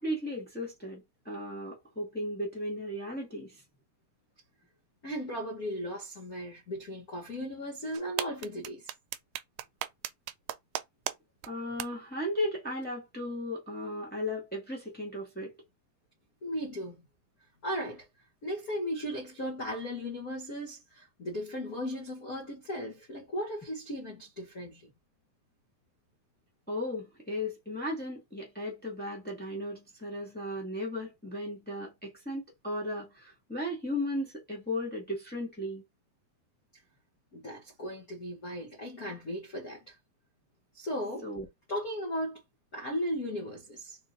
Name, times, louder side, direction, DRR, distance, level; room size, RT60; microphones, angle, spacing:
voice 1, 0.0-3.6 11.5-15.5 26.7-35.8 41.2-41.5, left 1 dB, 5° left, 1.0 m, -36 dB
voice 2, 5.0-8.9 16.4-17.0 17.6-18.1 18.4-24.8 37.3-39.9 40.7-41.3 41.7-42.4 42.7-44.0, equal, 75° left, 0.8 m, -36 dB
sound 1, 7.9-11.1 11.4-11.5 11.8-11.9, right 13 dB, 85° right, 2.1 m, -35 dB
4.7 x 3.8 x 2.8 m
omnidirectional pair, 3.7 m